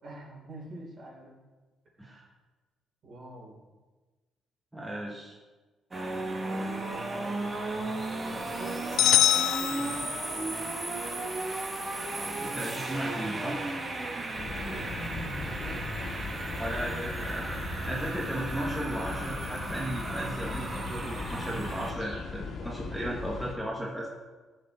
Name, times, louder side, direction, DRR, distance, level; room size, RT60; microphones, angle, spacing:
voice 1, 0.0-1.4 3.0-3.6 6.1-10.7 14.7-16.6 17.0-17.6 22.5-23.1, right 2 dB, 50° right, -3 dB, 3.9 m, -46 dB
voice 2, 4.7-5.3 12.4-13.6 16.6-17.4 17.9-24.1, right 1 dB, 5° right, -4 dB, 1.6 m, -35 dB
sound 1, 5.9-21.9, right 2 dB, 25° right, 1.6 m, -35 dB
sound 2, 9.0-10.5, left 12 dB, 80° left, 0.3 m, -24 dB
sound 3, 14.4-23.5, left 4 dB, 55° left, 1.9 m, -39 dB
14.0 x 6.8 x 4.3 m, 1.3 s
cardioid pair, 130°, 0 cm